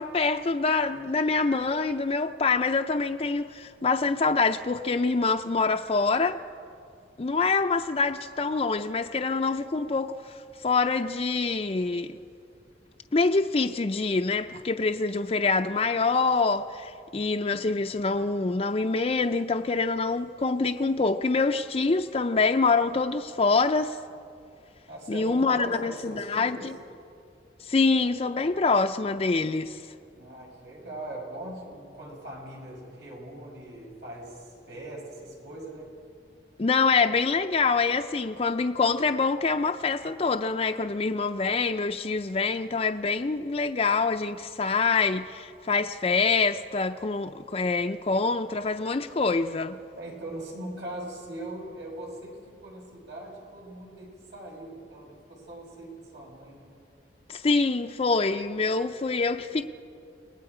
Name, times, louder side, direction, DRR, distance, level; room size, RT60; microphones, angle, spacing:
voice 1, 0.0-6.4 7.2-12.2 13.1-24.0 25.1-26.7 27.6-29.8 36.6-49.8 57.3-59.6, left 4 dB, 35° left, 0.5 m, -25 dB
voice 2, 17.5-17.9 24.9-26.7 30.1-35.9 50.0-56.7, right 1 dB, 80° right, 6.6 m, -41 dB
29.5 x 19.5 x 5.0 m
head